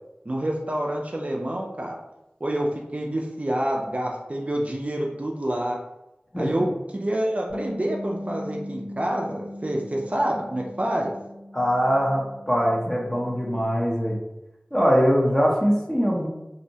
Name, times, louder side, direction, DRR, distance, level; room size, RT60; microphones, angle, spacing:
voice 1, 0.3-2.0 2.4-5.8 6.4-11.1, right 1 dB, 40° right, -1 dB, 0.3 m, -27 dB
voice 2, 6.3-6.7 11.5-14.2 14.7-16.3, equal, 15° left, -3 dB, 0.6 m, -22 dB
Bass guitar, 7.5-13.7, left 1 dB, 40° left, 1.0 m, -39 dB
2.6 x 2.0 x 2.7 m, 0.93 s
wide cardioid pair, 45°, 3 cm